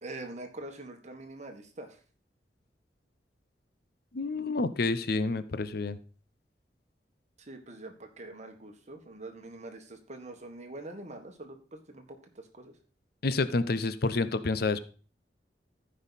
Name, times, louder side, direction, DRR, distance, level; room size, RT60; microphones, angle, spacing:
voice 1, 0.0-2.0 7.4-12.7, right 2 dB, 40° right, 5 dB, 1.5 m, -44 dB
voice 2, 4.1-6.0 13.2-14.8, left 3 dB, 60° left, 13 dB, 0.6 m, -29 dB
14.0 x 5.4 x 4.1 m, 0.39 s
head